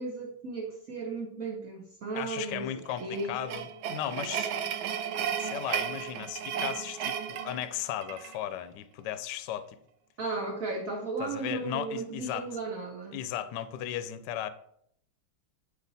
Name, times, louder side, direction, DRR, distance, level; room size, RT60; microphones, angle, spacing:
voice 1, 0.0-2.7 3.0-3.4 10.2-13.2, right 3 dB, 55° right, 1.2 m, -35 dB
voice 2, 2.1-4.5 5.4-9.8 11.2-12.5 13.1-14.5, left 11 dB, 70° left, 1.1 m, -36 dB
sound 1, 2.9-8.4, right 8 dB, 85° right, 1.5 m, -34 dB
8.8 x 5.1 x 4.1 m
omnidirectional pair, 2.1 m